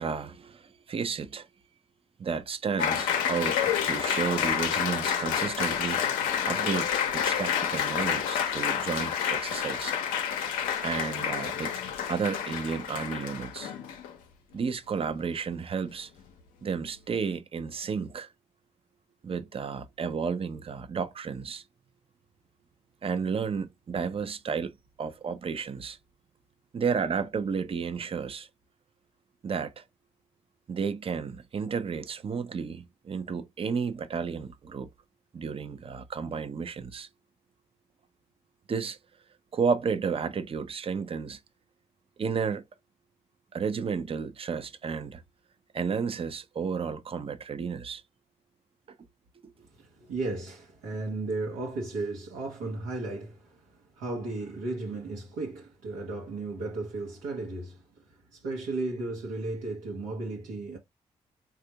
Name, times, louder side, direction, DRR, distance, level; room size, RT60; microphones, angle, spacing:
voice 1, 0.0-1.5 2.2-6.0 6.4-9.9 10.8-11.7 12.1-13.7 14.5-16.1 16.6-18.3 19.2-21.6 23.0-24.7 25.0-26.0 26.7-28.5 29.4-29.8 30.7-34.9 35.3-37.1 38.7-39.0 39.5-41.4 42.2-42.6 43.5-45.2 45.7-48.0, right 6 dB, 40° right, 0.6 m, -32 dB
Applause, 2.8-14.1, left 8 dB, 85° left, 0.6 m, -29 dB
voice 2, 49.6-60.8, right 3 dB, 80° right, 0.9 m, -35 dB
3.4 x 2.4 x 2.8 m
hypercardioid pair, 45°, 14 cm